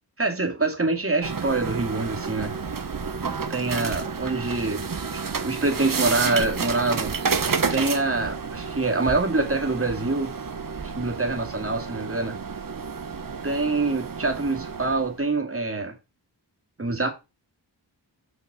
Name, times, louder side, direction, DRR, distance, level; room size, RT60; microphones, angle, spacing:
voice 1, 0.2-2.5 3.2-4.8 5.1-7.1 7.7-10.3 10.8-12.3 13.4-15.9 16.8-17.1, right 3 dB, 30° right, 2.3 m, -25 dB
sound 1, 1.2-15.2, right 5 dB, 50° right, 1.1 m, -30 dB
5.8 x 5.5 x 4.9 m
wide cardioid pair, 65°, 44 cm